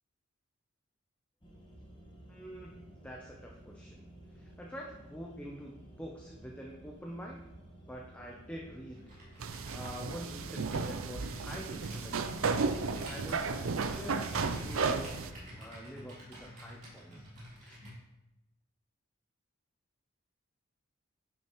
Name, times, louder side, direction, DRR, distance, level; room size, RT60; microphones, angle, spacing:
sound 1, 1.4-15.5, right 1 dB, 25° left, 1.5 m, -53 dB
voice 1, 2.3-4.1 4.3-7.4 7.8-9.0 9.5-12.4 12.8-13.4 13.9-17.2 17.6-17.9, equal, 5° left, -1 dB, 0.6 m, -46 dB
Computer keyboard, 8.9-18.0, equal, 35° right, 2.9 m, -50 dB
sound 2, 9.4-15.3, right 4 dB, 75° right, 0.5 m, -34 dB
10.0 x 6.2 x 3.1 m, 0.94 s
head